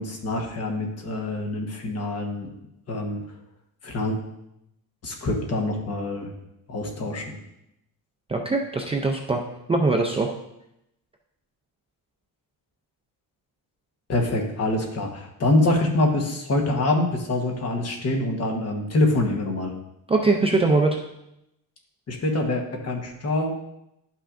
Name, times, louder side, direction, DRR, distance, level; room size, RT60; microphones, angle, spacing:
voice 1, 0.0-2.5 2.9-3.4 3.8-4.2 5.0-6.3 6.7-7.4 14.1-19.7 22.1-23.5, left 2 dB, 40° left, 2 dB, 1.2 m, -25 dB
voice 2, 8.3-9.4 9.7-10.3 20.1-21.0, right 3 dB, 15° right, 1 dB, 0.4 m, -21 dB
11.0 x 5.8 x 2.5 m, 0.84 s
cardioid pair, 155°, 38 cm